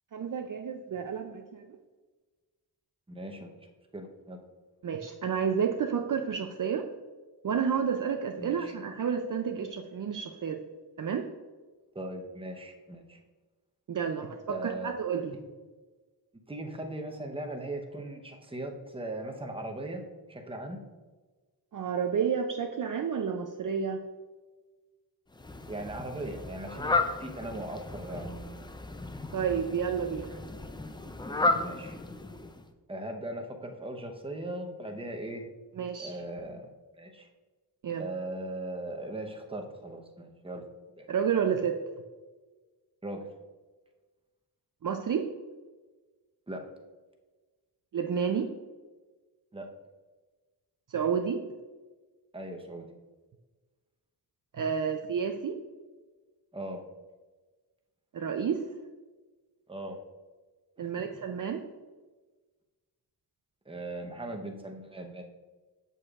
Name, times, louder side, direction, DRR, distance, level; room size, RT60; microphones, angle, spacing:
voice 1, 0.1-1.7 4.8-6.9 7.4-10.6 11.0-11.3 13.9-15.3 21.7-24.0 29.3-30.4 35.8-36.2 37.8-38.1 41.1-41.8 44.8-45.3 47.9-48.5 50.9-51.4 54.5-55.6 58.1-58.7 60.8-61.6, right 7 dB, 50° right, 5 dB, 0.5 m, -30 dB
voice 2, 3.1-3.7 3.9-4.4 8.4-8.7 11.9-13.2 14.5-15.0 16.5-20.0 20.3-20.8 25.6-28.6 31.5-32.0 32.9-35.4 36.0-36.7 37.0-37.3 38.0-40.6 41.0-41.1 43.0-43.3 46.5-46.6 49.5-49.7 52.3-52.9 56.5-56.8 59.7-60.0 60.8-60.9 63.7-65.2, right 1 dB, 15° right, 3 dB, 0.9 m, -39 dB
Fowl, 25.3-32.7, left 3 dB, 10° left, 0.4 m, -34 dB
7.7 x 6.4 x 2.4 m, 1.3 s
cardioid pair, 70°, 42 cm